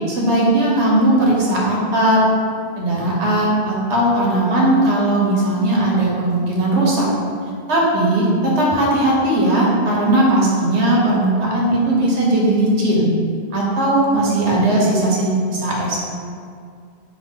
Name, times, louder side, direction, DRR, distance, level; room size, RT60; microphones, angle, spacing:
voice 1, 0.1-2.2 2.8-7.1 7.7-13.1 13.5-16.0, right 1 dB, 85° right, -4 dB, 1.2 m, -17 dB
5.0 x 2.3 x 3.6 m, 2.3 s
omnidirectional pair, 1.1 m